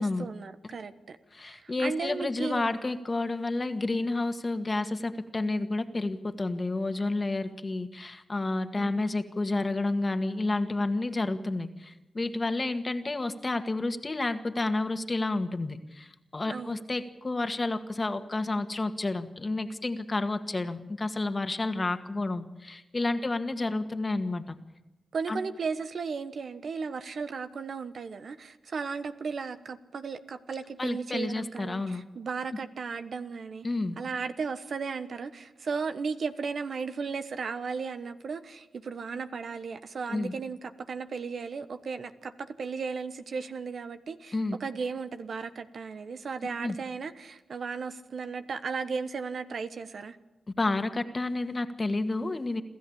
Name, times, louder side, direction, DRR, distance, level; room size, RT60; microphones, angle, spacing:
voice 1, 0.0-1.2 1.4-2.7 8.7-9.0 16.5-16.8 23.1-23.3 25.1-33.7 34.0-50.2, right 5 dB, 65° right, 10 dB, 1.2 m, -35 dB
voice 2, 1.3-24.6 25.3-25.4 30.8-32.0 32.5-32.6 33.6-34.0 40.1-40.3 44.3-44.6 46.6-46.7 50.6-52.6, left 2 dB, 35° left, 8 dB, 1.8 m, -30 dB
27.5 x 13.5 x 8.7 m, 1.0 s
cardioid pair, 55°, 0 cm